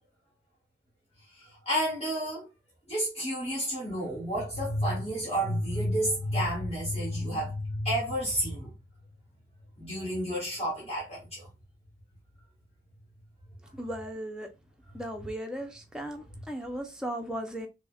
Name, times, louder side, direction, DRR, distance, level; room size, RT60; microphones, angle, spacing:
voice 1, 1.3-2.5 2.9-8.7 9.8-11.4, equal, 35° left, 1.8 m, -30 dB
voice 2, 13.7-14.5 14.9-17.7, right 1 dB, 5° right, 0.6 m, -36 dB
6.0 x 2.1 x 2.3 m
head